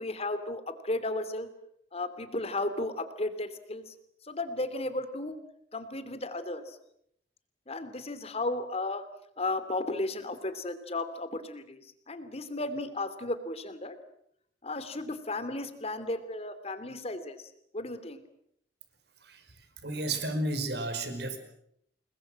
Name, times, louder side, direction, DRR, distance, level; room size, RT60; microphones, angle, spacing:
voice 1, 0.0-1.5 1.9-3.8 4.3-5.4 5.7-6.6 7.7-9.0 9.4-11.8 12.1-14.0 14.6-17.4 17.7-18.2, left 2 dB, 35° left, 12 dB, 2.9 m, -34 dB
voice 2, 19.8-21.4, right 2 dB, 65° right, 8 dB, 5.2 m, -32 dB
29.0 x 21.0 x 7.7 m, 0.72 s
head